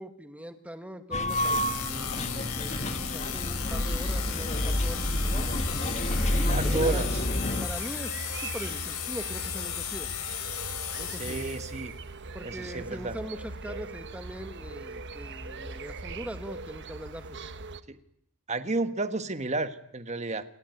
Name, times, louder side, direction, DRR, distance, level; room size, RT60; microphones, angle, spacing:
voice 1, 0.0-1.7 2.5-2.7 3.1-5.6 6.4-7.1 7.6-10.1 11.0-11.4 12.3-17.4, equal, 5° right, 7 dB, 2.1 m, -41 dB
sound 1, 1.1-7.7, left 1 dB, 30° left, 1.5 m, -29 dB
sound 2, 1.3-11.8, left 9 dB, 80° left, 4.6 m, -35 dB
voice 2, 1.8-2.5 6.5-7.2 11.1-11.9 12.4-13.1 17.9-18.0 18.5-20.4, right 3 dB, 30° right, 10 dB, 1.5 m, -32 dB
sound 3, 3.7-17.8, right 3 dB, 55° right, 1.3 m, -40 dB
28.5 x 20.5 x 9.6 m, 0.75 s
head